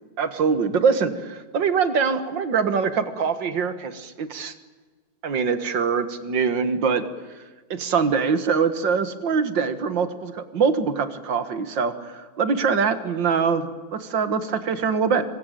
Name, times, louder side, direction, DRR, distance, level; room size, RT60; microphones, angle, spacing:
voice 1, 0.2-4.5 5.2-7.0 7.7-15.2, right 5 dB, 65° right, 11 dB, 2.3 m, -23 dB
27.0 x 23.0 x 9.1 m, 1.4 s
omnidirectional pair, 2.2 m